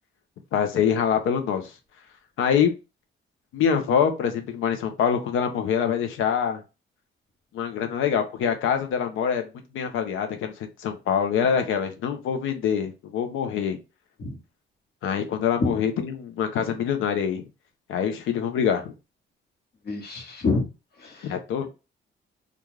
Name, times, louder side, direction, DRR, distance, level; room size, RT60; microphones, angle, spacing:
voice 1, 0.5-1.7 2.4-2.7 3.5-6.6 7.5-9.5 9.7-13.8 15.0-17.4 17.9-18.9 21.2-21.7, left 7 dB, 85° left, 7 dB, 0.6 m, -25 dB
voice 2, 19.9-20.6 21.0-21.3, left 3 dB, 55° left, 2 dB, 1.2 m, -26 dB
2.4 x 2.3 x 3.1 m, 0.28 s
cardioid pair, 90°, 20 cm